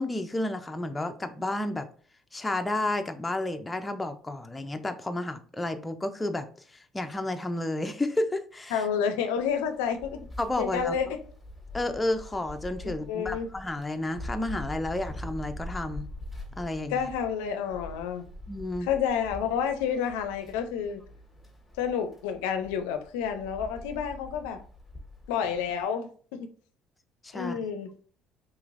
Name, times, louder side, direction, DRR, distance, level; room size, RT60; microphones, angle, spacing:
voice 1, 0.0-1.9 2.3-6.5 6.9-8.8 10.4-11.0 11.7-16.1 16.6-17.1 18.5-18.9 27.2-27.6, left 2 dB, 15° left, 0.5 m, -31 dB
voice 2, 8.7-10.3 10.6-11.2 12.8-13.5 16.9-18.2 18.8-21.0 21.8-24.6 25.3-26.1 26.4-26.5 27.3-27.9, left 7 dB, 90° left, 0.4 m, -29 dB
sound 1, 9.4-25.8, left 1 dB, ahead, 1.4 m, -44 dB
3.8 x 3.0 x 2.5 m
supercardioid pair, 80°, 0 cm